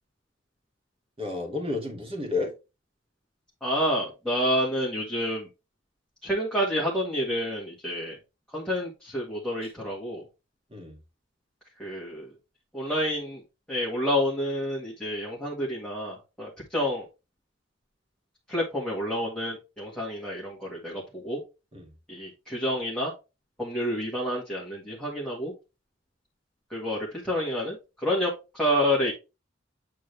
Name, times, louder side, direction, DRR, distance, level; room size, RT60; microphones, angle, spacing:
voice 1, 1.2-2.5 9.6-9.7 10.7-11.0 21.7-21.9, left 3 dB, 30° right, 1 dB, 2.1 m, -31 dB
voice 2, 3.6-5.5 6.2-8.2 8.5-10.2 11.8-12.3 12.7-13.4 13.7-17.1 18.5-21.4 22.1-23.1 23.6-25.5 26.7-29.1, equal, 5° left, -5 dB, 1.8 m, -29 dB
8.5 x 3.8 x 3.3 m, 0.28 s
head